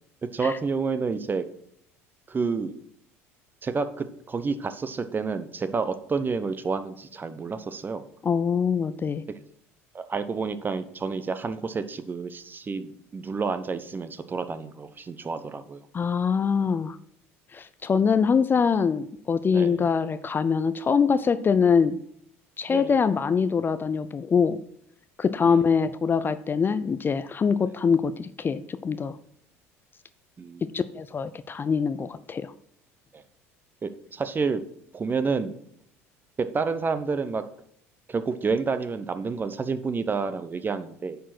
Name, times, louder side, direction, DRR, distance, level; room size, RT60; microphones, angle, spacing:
voice 1, 0.3-1.4 2.3-2.8 3.6-8.1 9.3-9.4 9.9-15.9 19.5-19.8 22.7-22.9 25.4-25.7 30.4-30.6 33.1-33.2 33.8-34.6 34.9-35.6 36.4-37.4 38.1-41.2, right 4 dB, 25° right, 11 dB, 0.9 m, -29 dB
voice 2, 8.2-9.2 15.9-17.0 17.5-22.0 22.6-24.6 25.2-29.1 30.7-32.5, left 6 dB, 30° left, 13 dB, 0.5 m, -24 dB
10.0 x 4.7 x 6.1 m, 0.69 s
hypercardioid pair, 65°, 7 cm